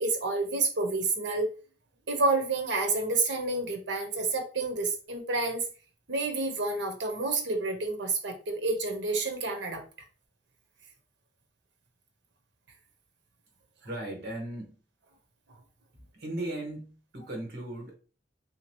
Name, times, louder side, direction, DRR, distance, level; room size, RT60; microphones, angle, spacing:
voice 1, 0.0-1.5 2.1-5.6 6.1-9.8 13.8-13.9, right 3 dB, 85° right, 0.9 m, -29 dB
voice 2, 13.8-14.7 15.9-17.9, right 1 dB, 60° right, 1.1 m, -37 dB
3.6 x 2.8 x 2.9 m
head